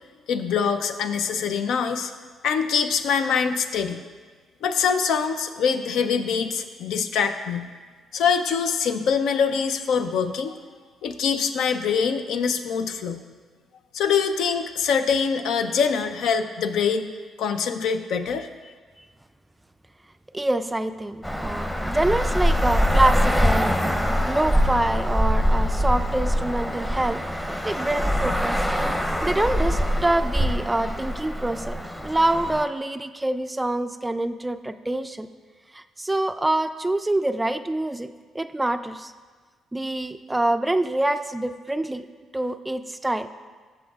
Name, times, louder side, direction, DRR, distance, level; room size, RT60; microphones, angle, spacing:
voice 1, 0.3-2.1 2.4-4.0 4.6-7.7 8.1-10.6 11.0-13.2 13.9-17.1 17.4-18.5, left 6 dB, 80° left, 8 dB, 0.5 m, -24 dB
voice 2, 20.3-23.8 24.3-31.8 32.0-35.3 35.7-38.1 38.3-39.1 39.7-42.0 42.3-43.3, right 1 dB, 10° right, 10 dB, 0.3 m, -26 dB
Traffic noise roadway noise, 21.2-32.6, equal, 5° left, 0.7 m, -24 dB
14.0 x 6.2 x 2.4 m, 1.5 s
cardioid pair, 90°, 0 cm